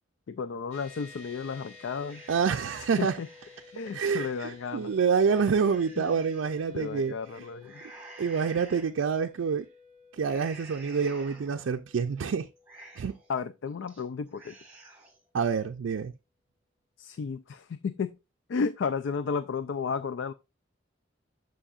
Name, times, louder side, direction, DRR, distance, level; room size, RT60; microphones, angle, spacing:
voice 1, 0.3-2.2 2.8-3.3 3.7-4.9 6.0-6.2 6.7-7.8 13.3-14.6 17.0-18.2 18.5-20.3, left 5 dB, 70° left, 0.4 m, -33 dB
sound 1, 0.7-14.3, left 3 dB, 35° left, 2.7 m, -53 dB
sound 2, 2.1-3.7 4.2-4.3 4.8-6.6 7.6-8.9 9.3-9.7 10.2-11.7 12.1-12.2 12.6-13.3 13.7-14.0 14.3-15.2, right 2 dB, 5° right, 1.8 m, -51 dB
voice 2, 2.3-3.1 3.9-7.4 8.2-9.7 10.1-12.5 13.0-13.2 15.3-16.1, right 6 dB, 85° right, 0.4 m, -27 dB
9.8 x 6.3 x 2.4 m
head